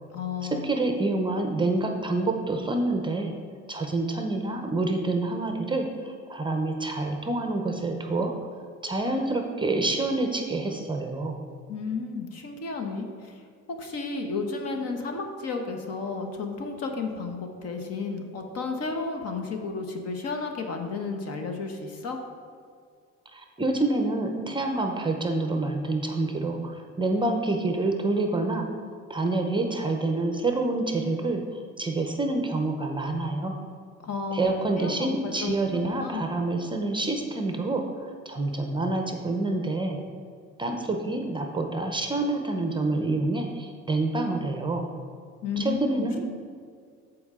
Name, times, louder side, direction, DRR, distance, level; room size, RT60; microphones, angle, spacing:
voice 1, 0.1-0.6 11.7-13.4 13.8-22.2 34.0-34.5 34.8-36.2 45.4-46.3, left 4 dB, 55° left, 4 dB, 1.1 m, -32 dB
voice 2, 0.6-3.3 3.7-8.4 8.8-11.4 23.3-28.7 29.1-33.6 34.3-40.0 40.6-44.8 45.6-46.3, right 2 dB, 15° right, 3 dB, 0.7 m, -27 dB
14.0 x 4.7 x 3.7 m, 2.2 s
cardioid pair, 140°, 30 cm